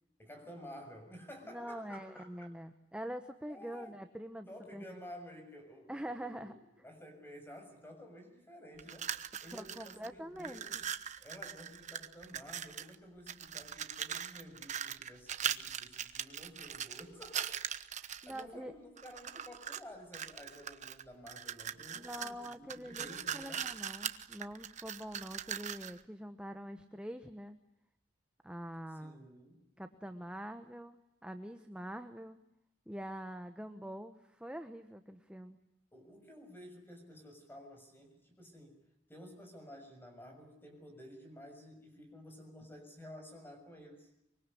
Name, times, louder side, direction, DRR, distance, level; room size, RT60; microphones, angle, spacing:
voice 1, 0.2-2.5 3.5-4.0 4.5-6.5 6.8-9.1 9.4-10.9 11.2-17.7 18.2-23.7 29.0-29.7 35.9-38.8 39.1-44.1, equal, 10° left, 5 dB, 6.9 m, -52 dB
voice 2, 1.5-4.5 4.7-5.0 5.9-6.5 9.5-10.8 18.0-18.7 21.9-27.6 28.4-29.2 29.8-31.0 31.2-32.4 32.9-35.6, equal, 5° right, 7 dB, 1.1 m, -45 dB
sound 1, 8.8-10.1 10.4-12.9 13.3-18.4 19.0-19.8 20.1-26.0, right 8 dB, 40° right, 1.1 m, -41 dB
25.0 x 24.0 x 10.0 m, 0.84 s
head